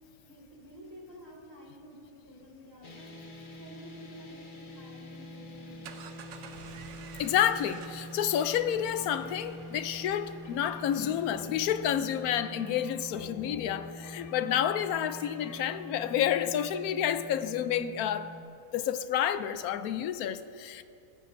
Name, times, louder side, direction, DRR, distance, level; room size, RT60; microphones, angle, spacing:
voice 1, 0.3-3.1 3.6-6.0, equal, 15° right, 2.4 m, -51 dB
sound 1, 2.8-18.4, equal, 40° left, 1.1 m, -45 dB
sound 2, 5.6-11.9, right 7 dB, 65° right, 0.9 m, -51 dB
voice 2, 7.2-18.3 18.7-20.8, left 10 dB, 80° left, 1.1 m, -29 dB
sound 3, 8.4-16.3, left 6 dB, 60° left, 0.5 m, -51 dB
26.0 x 9.7 x 2.6 m
omnidirectional pair, 1.5 m